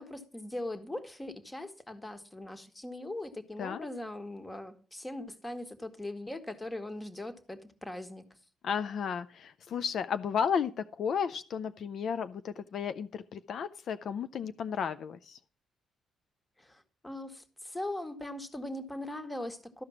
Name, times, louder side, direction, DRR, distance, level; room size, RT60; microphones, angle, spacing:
voice 1, 0.0-8.2 16.6-19.8, left 1 dB, 15° left, 1.4 m, -40 dB
voice 2, 8.6-15.4, left 7 dB, 60° left, 0.5 m, -33 dB
13.0 x 5.0 x 7.1 m
cardioid pair, 90°, 0 cm